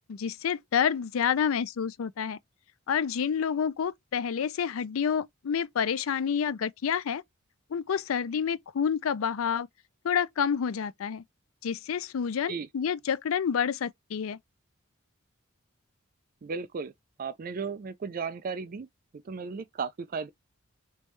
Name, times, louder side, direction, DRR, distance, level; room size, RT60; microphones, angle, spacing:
voice 1, 0.1-2.4 2.9-7.2 7.7-9.7 10.0-11.2 11.6-14.4, left 7 dB, 80° left, 0.4 m, -28 dB
voice 2, 16.4-16.9 17.2-18.9 19.2-20.3, right 5 dB, 45° right, 0.4 m, -35 dB
3.4 x 3.1 x 3.1 m
head